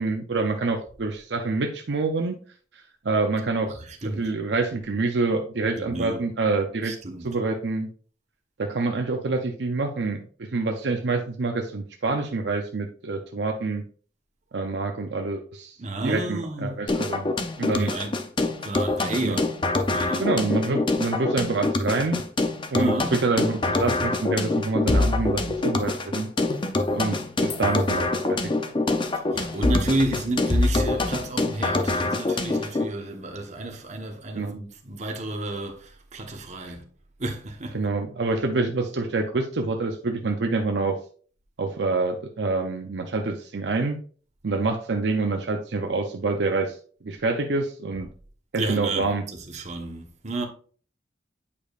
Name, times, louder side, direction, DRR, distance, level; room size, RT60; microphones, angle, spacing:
voice 1, 0.0-2.4 2.7-3.8 4.0-6.9 7.2-7.9 8.6-13.8 14.5-15.8 16.0-17.3 17.6-17.9 19.2-19.4 20.2-22.2 22.7-26.3 26.9-28.5 34.3-34.6 37.7-41.0 41.6-44.0 44.4-48.1 48.5-49.3, right 3 dB, 65° right, 0.6 m, -26 dB
voice 2, 3.8-4.3 5.8-6.2 6.8-7.4 15.8-16.8 17.8-18.2 18.6-19.4 19.9-20.3 22.8-23.3 29.3-36.9 37.2-37.8 47.9-48.0 48.5-50.5, right 2 dB, 40° right, 1.1 m, -31 dB
sound 1, 16.9-32.9, left 2 dB, 25° left, 0.6 m, -25 dB
8.5 x 5.1 x 2.4 m
head